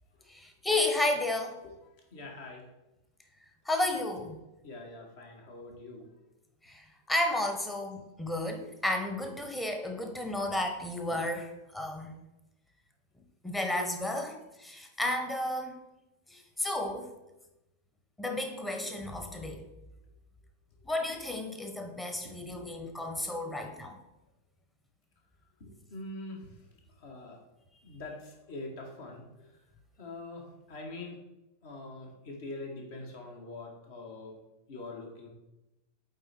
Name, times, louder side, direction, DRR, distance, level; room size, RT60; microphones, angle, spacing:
voice 1, 0.3-1.6 3.7-4.4 6.6-12.2 13.4-15.8 16.3-17.1 18.2-19.6 20.8-24.0, left 1 dB, 10° left, 4 dB, 1.1 m, -32 dB
voice 2, 2.1-2.6 4.6-6.2 16.3-16.4 22.2-22.8 25.6-26.6 27.0-27.4 27.8-29.5 30.0-31.2 31.6-34.4 34.7-35.3, left 2 dB, 50° left, 0 dB, 1.8 m, -44 dB
8.7 x 4.0 x 4.4 m, 0.96 s
figure-of-eight pair, 90°, 0 cm